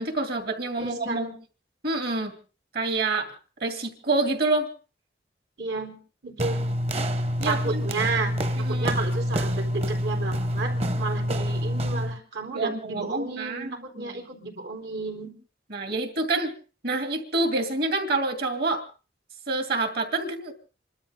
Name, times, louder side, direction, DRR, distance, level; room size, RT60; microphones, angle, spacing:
voice 1, 0.0-1.3 1.8-2.3 2.7-3.3 3.6-4.7 7.4-7.8 8.6-8.9 12.5-14.2 15.7-16.5 16.8-18.8 19.5-20.5, right 2 dB, 60° right, 6 dB, 2.7 m, -27 dB
voice 2, 0.8-1.3 5.6-6.0 6.2-6.7 7.4-8.3 8.7-15.3, right 4 dB, 80° right, 4 dB, 4.3 m, -32 dB
sound 1, 6.4-12.2, equal, 35° right, 1.1 m, -27 dB
28.5 x 12.5 x 3.8 m, 0.36 s
head